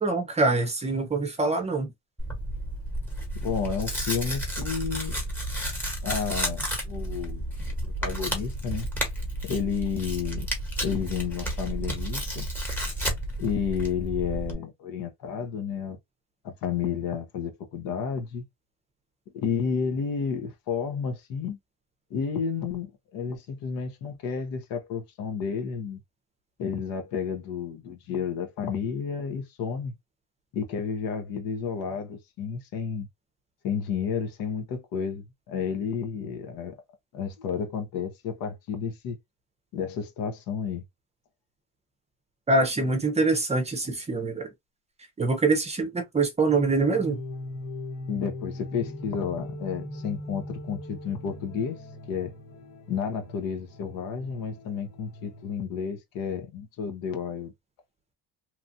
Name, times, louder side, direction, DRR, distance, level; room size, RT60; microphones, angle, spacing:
voice 1, 0.0-1.9 42.5-44.5 45.2-47.2, right 3 dB, 20° right, 0.7 m, -24 dB
Tearing, 2.2-14.5, right 1 dB, 5° left, 1.2 m, -32 dB
voice 2, 3.4-5.2 6.0-7.4 7.8-8.9 9.4-10.5 10.8-12.5 13.4-16.0 16.4-18.4 19.3-21.6 22.1-26.0 26.6-29.9 30.5-33.1 33.6-36.8 37.1-39.2 39.7-40.8 48.1-51.8 52.1-52.3 52.9-57.5, left 6 dB, 70° left, 1.0 m, -31 dB
sound 1, 46.5-55.6, left 1 dB, 40° left, 1.3 m, -40 dB
2.9 x 2.4 x 2.7 m
cardioid pair, 130°, 35 cm